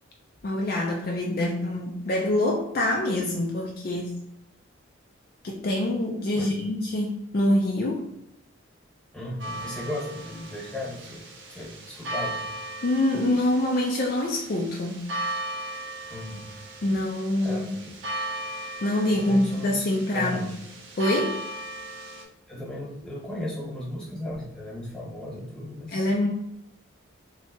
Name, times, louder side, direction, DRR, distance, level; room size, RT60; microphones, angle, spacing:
voice 1, 0.4-4.1 5.4-8.1 12.8-15.1 16.8-17.8 18.8-20.4 21.0-21.4 25.9-26.3, left 1 dB, 45° left, -1 dB, 0.4 m, -25 dB
voice 2, 9.1-12.5 16.1-16.5 17.4-17.8 19.0-20.5 22.5-26.1, left 1 dB, 5° left, -7 dB, 1.1 m, -36 dB
sound 1, 9.4-22.2, right 1 dB, 60° right, 0.6 m, -37 dB
3.2 x 2.7 x 2.7 m, 0.80 s
head